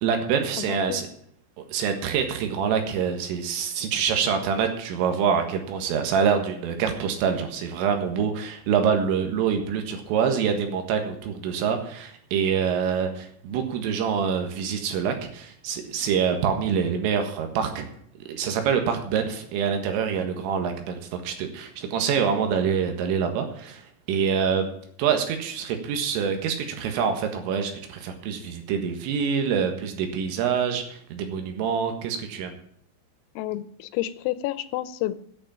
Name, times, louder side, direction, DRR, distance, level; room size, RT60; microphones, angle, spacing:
voice 1, 0.0-1.1 1.7-17.9 18.3-23.8 24.1-24.7 25.0-32.6, right 7 dB, 80° right, 6 dB, 4.1 m, -26 dB
voice 2, 0.5-1.1 33.4-35.1, left 15 dB, 90° left, 14 dB, 3.4 m, -30 dB
9.7 x 8.6 x 8.9 m, 0.65 s
omnidirectional pair, 6.0 m